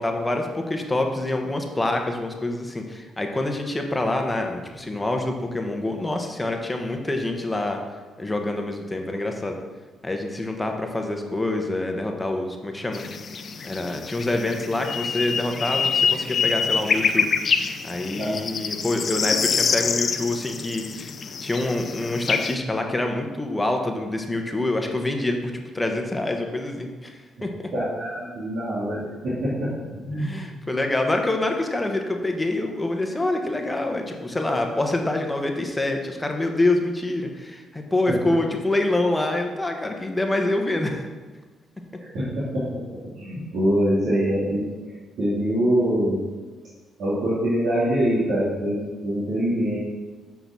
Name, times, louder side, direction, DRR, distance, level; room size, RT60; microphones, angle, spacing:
voice 1, 0.0-7.8 8.2-9.6 10.0-13.0 13.6-17.3 17.5-21.1 21.4-27.5 30.2-41.1, left 2 dB, 15° left, 3 dB, 1.2 m, -26 dB
sound 1, 12.9-22.5, left 5 dB, 50° left, 0.6 m, -26 dB
voice 2, 27.7-30.6 38.1-38.2 41.9-42.7 43.1-44.6 45.2-46.2 47.0-49.8, equal, 70° right, -9 dB, 3.3 m, -24 dB
7.9 x 6.0 x 6.1 m, 1.3 s
cardioid pair, 90°, 0 cm